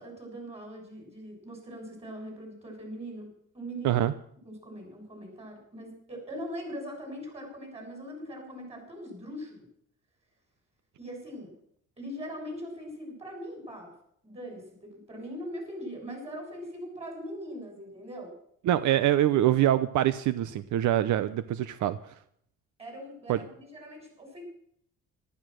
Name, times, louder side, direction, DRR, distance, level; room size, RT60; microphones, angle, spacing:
voice 1, 0.0-3.3 3.5-4.1 4.5-9.7 11.0-11.5 12.0-13.9 14.2-18.3 22.8-24.4, equal, 20° right, 2 dB, 7.3 m, -41 dB
voice 2, 18.6-22.0 23.3-23.4, right 12 dB, 75° right, 14 dB, 0.8 m, -24 dB
14.0 x 13.0 x 6.3 m, 0.67 s
cardioid pair, 130°, 30 cm